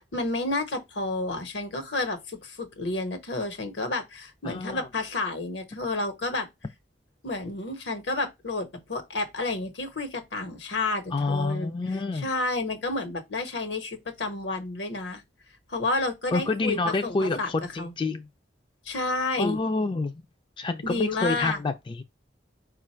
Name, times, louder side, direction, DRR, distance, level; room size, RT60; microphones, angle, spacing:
voice 1, 0.0-6.5 7.2-15.2 15.7-17.5 17.8-17.9 18.8-19.6 20.8-21.6, left 2 dB, 75° left, 1.1 m, -30 dB
voice 2, 4.4-4.9 11.1-12.2 16.3-18.3 19.4-20.1 20.6-22.0, left 3 dB, 30° left, 0.3 m, -28 dB
4.8 x 2.5 x 4.3 m
head